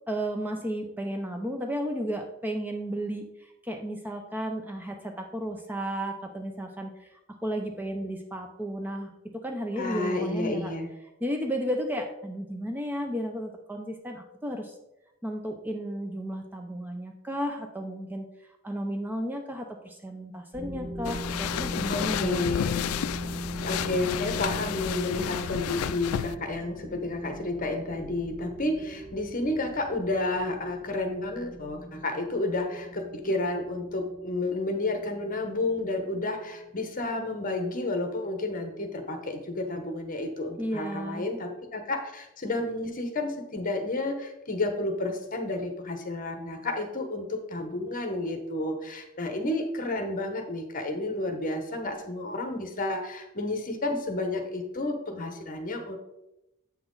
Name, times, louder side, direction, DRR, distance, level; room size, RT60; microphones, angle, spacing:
voice 1, 0.1-3.2 3.6-7.1 7.4-9.1 9.4-10.7 11.2-14.7 15.2-18.3 18.6-22.5 40.6-41.3, equal, 10° right, 3 dB, 0.6 m, -33 dB
voice 2, 9.7-10.9 21.9-22.8 23.6-56.0, left 2 dB, 40° left, 6 dB, 1.1 m, -31 dB
sound 1, 20.5-37.1, equal, 65° right, 2.7 m, -40 dB
sound 2, 21.0-26.4, left 10 dB, 90° left, 0.3 m, -32 dB
8.0 x 6.0 x 3.9 m, 0.90 s
head